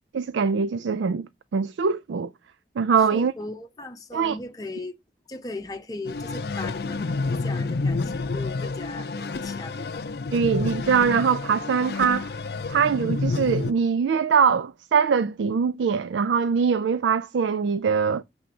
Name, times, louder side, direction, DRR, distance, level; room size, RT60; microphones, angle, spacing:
voice 1, 0.1-2.3 2.8-3.3 4.1-4.4 10.3-12.3 12.7-18.2, right 6 dB, 90° right, 0.4 m, -22 dB
voice 2, 3.1-5.0 5.3-10.0, left 2 dB, 20° left, 0.7 m, -38 dB
sound 1, 6.1-13.7, left 3 dB, 60° left, 0.5 m, -29 dB
6.4 x 3.5 x 5.9 m
head